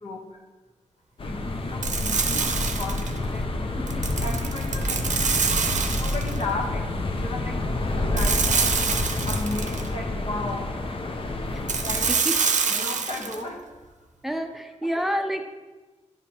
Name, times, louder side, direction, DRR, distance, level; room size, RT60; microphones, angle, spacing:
voice 1, 0.0-0.4 1.2-3.5 3.9-5.0 5.9-8.8 9.3-10.7 11.5-12.2 12.7-13.7 14.8-15.0, left 2 dB, 65° left, 1 dB, 1.2 m, -35 dB
sound 1, 1.2-12.1, left 2 dB, 45° left, 0.6 m, -28 dB
sound 2, 1.8-3.2 3.9-6.4 8.2-9.9 11.7-13.4, right 5 dB, 80° right, 0.6 m, -26 dB
voice 2, 14.2-15.4, equal, ahead, 5 dB, 0.5 m, -28 dB
10.0 x 5.1 x 2.9 m, 1.2 s
wide cardioid pair, 110°, 12 cm